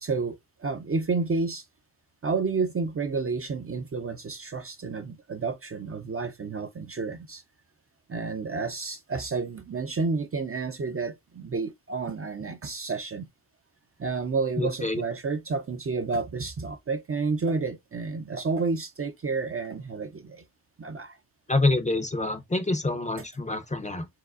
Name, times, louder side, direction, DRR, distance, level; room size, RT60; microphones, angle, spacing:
voice 1, 0.0-1.6 2.2-7.4 8.1-13.3 14.0-20.4 20.8-21.2, right 4 dB, 35° right, 0.5 m, -30 dB
voice 2, 14.6-15.0 21.5-24.1, left 2 dB, 20° left, 0.6 m, -26 dB
4.7 x 4.0 x 2.4 m
wide cardioid pair, 170°, 40 cm